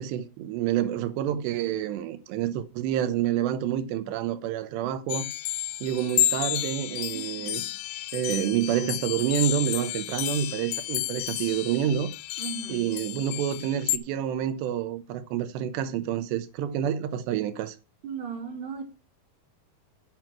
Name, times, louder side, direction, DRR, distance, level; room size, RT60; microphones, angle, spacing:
voice 1, 0.0-5.3 5.8-7.6 8.1-12.1 12.7-17.8, right 10 dB, 85° right, 3.0 m, -28 dB
sound 1, 5.1-14.0, left 15 dB, 80° left, 2.3 m, -31 dB
voice 2, 7.1-7.7 12.4-13.0 18.0-18.8, right 5 dB, 30° right, 3.0 m, -37 dB
9.3 x 5.9 x 7.5 m
omnidirectional pair, 4.8 m